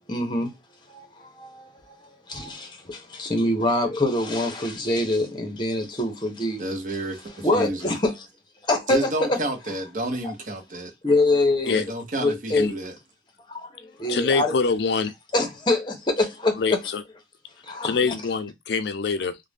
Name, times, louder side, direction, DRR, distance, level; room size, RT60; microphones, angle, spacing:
voice 1, 0.1-0.6 0.9-6.6 7.4-8.3 8.7-9.4 11.0-11.8 12.2-12.7 13.5-14.6 15.3-16.6 17.6-18.2, left 2 dB, 25° left, 0.7 m, -25 dB
voice 2, 6.6-7.9 8.9-10.9 11.7-12.9, right 1 dB, 45° right, 0.8 m, -30 dB
voice 3, 14.1-15.1 16.6-17.0 17.8-19.4, left 5 dB, 70° left, 0.4 m, -24 dB
2.4 x 2.1 x 3.3 m
head